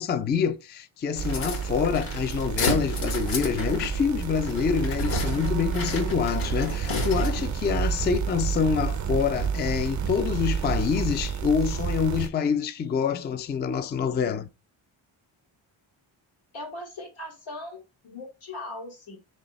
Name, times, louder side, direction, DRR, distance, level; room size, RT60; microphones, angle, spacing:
voice 1, 0.0-14.5, left 6 dB, 25° left, 0.3 m, -26 dB
sound 1, 1.2-7.6, left 4 dB, 70° left, 1.2 m, -33 dB
sound 2, 1.2-12.3, right 7 dB, 40° right, 0.5 m, -29 dB
voice 2, 16.5-17.8 18.0-19.2, left 2 dB, 85° left, 1.8 m, -39 dB
3.3 x 3.3 x 4.0 m
cardioid pair, 85°, 47 cm